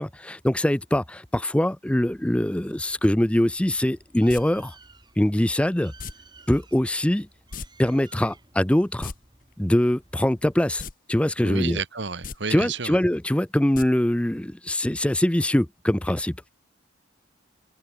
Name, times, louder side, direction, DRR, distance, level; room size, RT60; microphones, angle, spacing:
voice 1, 0.0-4.7 5.2-5.9 6.5-7.3 7.8-9.1 9.6-11.8 12.5-16.4, left 1 dB, 5° left, 0.4 m, -23 dB
Bird, 2.0-10.9, right 3 dB, 20° right, 7.0 m, -55 dB
sound 1, 4.3-4.4 6.0-6.1 7.5-7.7 7.9-8.0 8.9-9.1 10.8-10.9 11.3-11.4 12.1-12.4 13.7-13.8 14.2-14.3, left 5 dB, 45° left, 1.1 m, -35 dB
voice 2, 11.4-13.0, right 4 dB, 60° right, 1.6 m, -31 dB
head